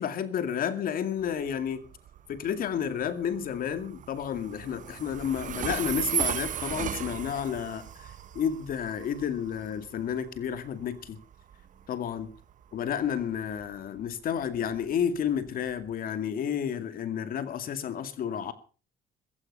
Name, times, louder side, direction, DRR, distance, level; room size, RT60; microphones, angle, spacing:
voice 1, 0.0-1.8 2.3-11.2 11.9-12.3 12.7-18.5, left 8 dB, 60° left, 2.3 m, -31 dB
Train, 1.2-15.9, right 9 dB, 50° right, 1.1 m, -37 dB
15.0 x 14.5 x 5.5 m
cardioid pair, 110°, 17 cm